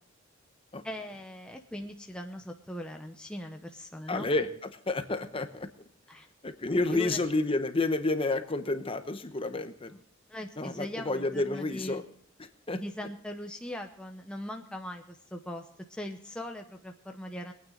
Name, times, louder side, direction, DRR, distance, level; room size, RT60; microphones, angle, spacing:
voice 1, 0.8-4.3 6.1-6.3 6.9-7.2 10.3-12.0 12.7-17.5, left 1 dB, 5° left, 3 dB, 0.7 m, -40 dB
voice 2, 4.1-4.5 4.9-5.7 6.4-10.0 10.6-12.0 12.4-12.8, left 2 dB, 25° left, 9 dB, 0.9 m, -30 dB
23.0 x 9.1 x 3.8 m, 0.62 s
head